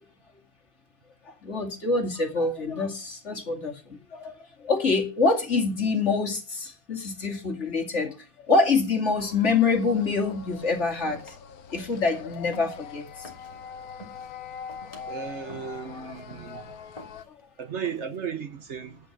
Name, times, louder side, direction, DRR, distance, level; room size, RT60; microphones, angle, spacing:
voice 1, 1.3-11.4 11.7-13.3 16.5-16.6 17.3-17.4, left 4 dB, 50° left, 2.6 m, -26 dB
sound 1, 9.2-17.2, left 6 dB, 90° left, 1.4 m, -43 dB
sound 2, 10.3-10.7 11.0-11.4 11.7-12.0 12.3-13.6 13.9-14.3 14.7-15.1 15.5-15.8 16.1-16.5 17.0-17.4 17.8-18.3, equal, 25° left, 2.5 m, -46 dB
voice 2, 15.1-16.8 17.6-19.0, right 7 dB, 55° right, 1.2 m, -35 dB
11.5 x 9.2 x 5.9 m
omnidirectional pair, 1.5 m